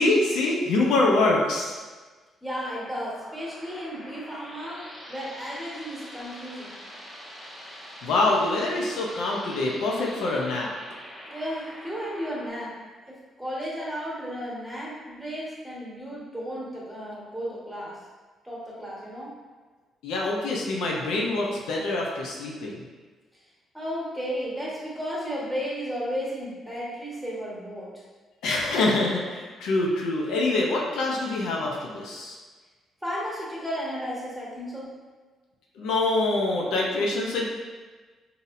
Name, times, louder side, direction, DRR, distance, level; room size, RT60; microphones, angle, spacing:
voice 1, 0.0-1.8 8.0-10.7 20.0-22.8 28.4-32.4 35.8-37.5, left 2 dB, 85° left, -2 dB, 0.6 m, -25 dB
voice 2, 2.4-4.8 5.1-6.7 11.2-12.7 13.1-17.9 18.4-19.3 23.7-27.9 33.0-34.9, equal, 5° right, -6 dB, 1.3 m, -34 dB
sound 1, 2.5-12.5, equal, 20° left, 1.3 m, -44 dB
4.0 x 2.7 x 2.5 m, 1.4 s
cardioid pair, 90°, 0 cm